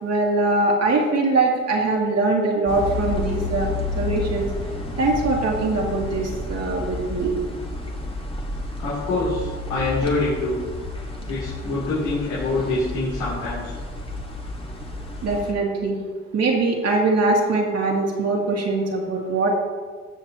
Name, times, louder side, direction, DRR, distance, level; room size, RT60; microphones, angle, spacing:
voice 1, 0.0-3.7 4.0-4.5 5.0-7.3 15.2-16.0 16.3-19.5, right 3 dB, 55° right, -1 dB, 2.3 m, -22 dB
sound 1, 2.7-15.5, left 2 dB, 20° left, 1.7 m, -31 dB
voice 2, 8.8-10.6 11.3-13.7, left 2 dB, 90° left, -9 dB, 3.3 m, -25 dB
16.5 x 6.6 x 3.0 m, 1.5 s
cardioid pair, 90°, 30 cm